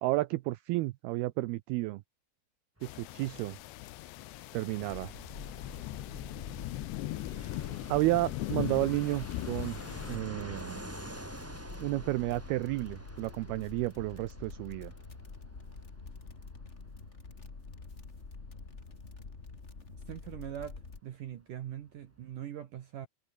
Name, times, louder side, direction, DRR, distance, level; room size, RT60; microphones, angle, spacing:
voice 1, 0.0-2.0 2.8-3.6 4.5-5.1 7.9-9.8 10.1-10.8 11.8-14.9, right 19 dB, 85° right, 2.2 m, -31 dB
sound 1, 2.8-10.2, left 20 dB, 80° left, 2.8 m, -40 dB
Fixed-wing aircraft airplane, 2.8-21.2 21.4-21.5 21.7-22.4, right 1 dB, 5° right, 1.1 m, -50 dB
sound 2, 4.9-21.0, left 4 dB, 30° left, 1.2 m, -47 dB
voice 2, 20.1-23.1, right 10 dB, 60° right, 2.4 m, -42 dB
omnidirectional pair, 5.2 m